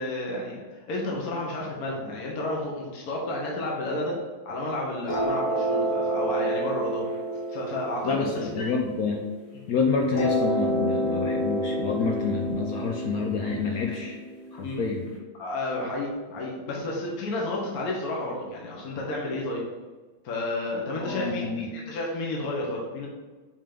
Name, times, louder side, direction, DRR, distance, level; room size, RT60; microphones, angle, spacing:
voice 1, 0.0-4.2 4.4-7.0 7.5-8.7 14.6-14.9 15.3-19.6 20.2-23.1, left 2 dB, 55° left, -2 dB, 1.3 m, -31 dB
sound 1, 5.1-9.5 10.1-15.1, right 1 dB, 35° left, 1.7 m, -29 dB
voice 2, 8.0-9.2 9.7-14.2 14.5-15.1 21.0-21.7, left 4 dB, 80° left, 2 dB, 0.8 m, -28 dB
5.6 x 3.6 x 5.1 m, 1.3 s
omnidirectional pair, 2.2 m